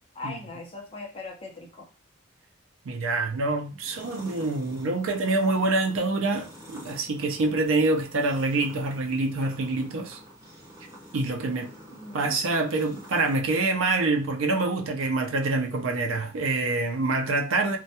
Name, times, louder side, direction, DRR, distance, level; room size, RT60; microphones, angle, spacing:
voice 1, 0.1-1.9 11.9-12.4, left 3 dB, 25° left, 0.6 m, -40 dB
voice 2, 2.9-10.2 11.1-11.7 12.1-17.8, right 3 dB, 70° right, 0.4 m, -26 dB
sound 1, 3.8-13.4, equal, 15° right, 0.8 m, -47 dB
2.2 x 2.2 x 2.7 m
head